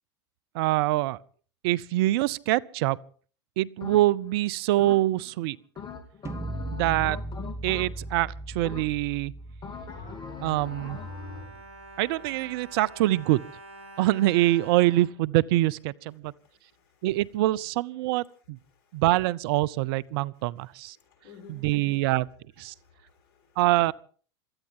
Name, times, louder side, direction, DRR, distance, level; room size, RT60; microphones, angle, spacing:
voice 1, 0.5-1.2 1.6-3.0 3.6-5.6 6.7-7.2 7.6-9.3 10.4-11.0 12.0-13.4 14.0-16.3 17.0-18.6 18.9-21.0 21.5-22.3 22.6-22.7 23.6-23.9, right 16 dB, 65° right, 0.7 m, -25 dB
sound 1, 3.8-4.3 4.8-5.3 5.8-8.2 8.6-9.2 9.6-11.6, left 5 dB, 35° left, 3.2 m, -41 dB
sound 2, 6.3-12.3, right 1 dB, 20° right, 1.2 m, -39 dB
Bowed string instrument, 9.8-16.0 16.7-16.8 17.1-17.3, right 2 dB, 80° right, 3.8 m, -48 dB
voice 2, 16.3-17.1 21.0-22.0 22.7-23.6, left 5 dB, 55° left, 6.5 m, -55 dB
27.0 x 13.0 x 3.7 m
hypercardioid pair, 95°, 14 cm